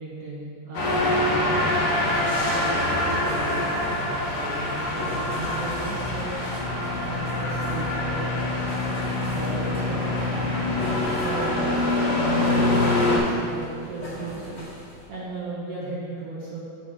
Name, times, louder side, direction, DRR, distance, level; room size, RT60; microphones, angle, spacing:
voice 1, 0.0-3.7 4.2-6.4 7.0-8.4 9.3-10.8 11.2-14.5 15.1-16.6, right 2 dB, 55° right, -6 dB, 1.8 m, -36 dB
sound 1, 0.7-13.2, left 2 dB, 85° left, 3.4 m, -25 dB
sound 2, 0.8-15.1, left 1 dB, 30° left, 1.9 m, -40 dB
8.3 x 7.7 x 3.6 m, 2.2 s
omnidirectional pair, 3.9 m